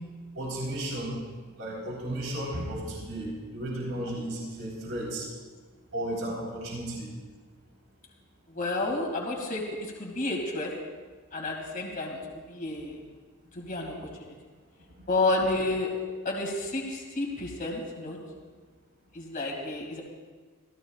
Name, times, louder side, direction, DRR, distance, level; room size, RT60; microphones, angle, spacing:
voice 1, 0.4-1.2 1.6-5.3 5.9-7.1, right 1 dB, 65° right, -4 dB, 4.2 m, -34 dB
voice 2, 8.5-10.7 11.3-13.0 13.5-13.9 14.3-14.4 15.1-15.9 16.2-18.2 19.1-20.0, left 2 dB, 40° left, -1 dB, 2.5 m, -30 dB
25.5 x 15.0 x 2.4 m, 1.4 s
head